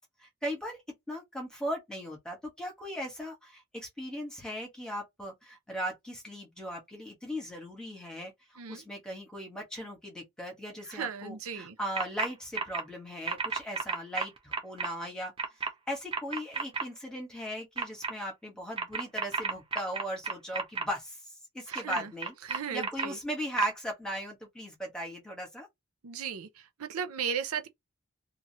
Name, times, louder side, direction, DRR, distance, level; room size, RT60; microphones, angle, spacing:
voice 1, 0.2-0.8 1.1-15.3 15.9-25.7, equal, 5° left, 1.1 m, -38 dB
voice 2, 10.9-11.7 21.7-22.1 22.5-23.2 26.0-26.5 26.8-27.7, right 7 dB, 90° right, 0.5 m, -35 dB
sound 1, 12.0-12.3 12.5-12.8 13.3-14.9 15.4-15.7 16.1-16.8 17.8-18.1 18.8-20.8 21.7-23.1 23.6-23.7, right 5 dB, 25° right, 0.5 m, -32 dB
2.8 x 2.4 x 2.8 m
head